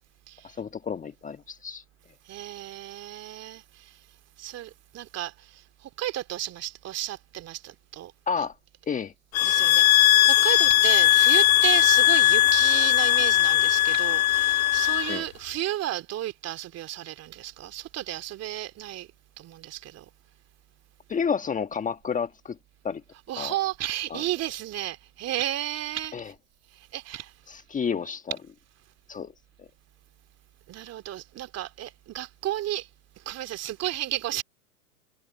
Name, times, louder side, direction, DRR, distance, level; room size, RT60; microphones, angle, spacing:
voice 1, 0.4-1.8 8.3-8.5 8.9-9.6 15.1-15.2 21.1-22.6 22.8-23.0 23.4-23.6 24.1-24.2 26.1-26.3 27.5-28.4 29.1-29.3 29.6-29.7, left 6 dB, 15° left, 1.5 m, -31 dB
voice 2, 2.3-3.9 4.4-8.1 9.4-19.1 19.4-20.0 23.3-26.1 26.9-27.3 30.7-32.9 33.3-34.4, right 13 dB, 35° right, 2.9 m, -33 dB
sound 1, 9.3-15.2, left 15 dB, 60° left, 2.0 m, -19 dB
hypercardioid pair, 110°, 46 cm